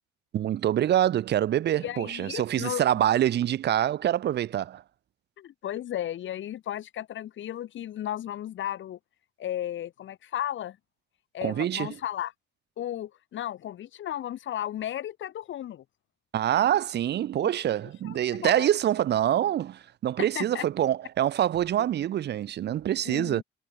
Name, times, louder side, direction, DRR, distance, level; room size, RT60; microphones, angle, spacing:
voice 1, 0.3-4.8 11.4-12.0 16.3-23.4, right 11 dB, 60° right, 0.7 m, -25 dB
voice 2, 1.8-2.8 5.4-9.0 9.4-10.8 11.3-12.3 12.8-15.8 17.4-17.5 18.0-18.7 20.2-20.7 23.1-23.4, left 11 dB, 75° left, 5.3 m, -34 dB
cardioid pair, 90°, 20 cm